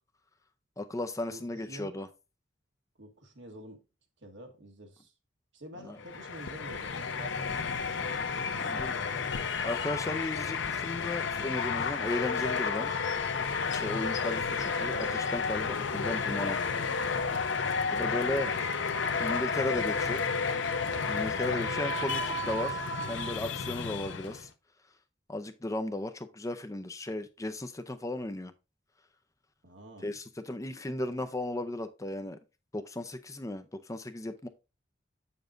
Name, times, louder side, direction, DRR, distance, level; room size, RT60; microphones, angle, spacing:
voice 1, 0.8-2.1 5.8-6.0 8.6-9.0 9.6-12.9 13.4-16.6 17.9-18.5 19.2-20.2 21.1-22.8 23.1-24.5 25.3-28.5 30.0-32.4 32.7-34.5, left 1 dB, 15° left, 0.5 m, -35 dB
voice 2, 1.3-2.0 3.0-3.8 4.2-5.1 5.5-9.1 17.8-18.7 19.5-19.9 20.3-20.6 29.6-30.1, right 1 dB, 70° right, 1.5 m, -48 dB
sound 1, 6.0-24.5, left 5 dB, 70° left, 0.6 m, -31 dB
7.6 x 7.0 x 2.6 m
head